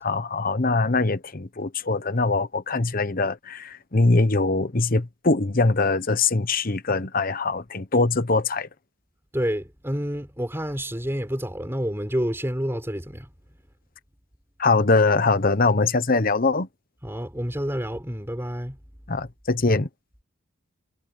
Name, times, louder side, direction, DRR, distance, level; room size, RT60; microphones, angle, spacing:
voice 1, 0.0-8.7 14.6-16.7 19.1-19.9, left 3 dB, 45° left, 1.1 m, -22 dB
voice 2, 9.3-13.3 17.0-18.8, equal, 10° right, 4.6 m, -28 dB
head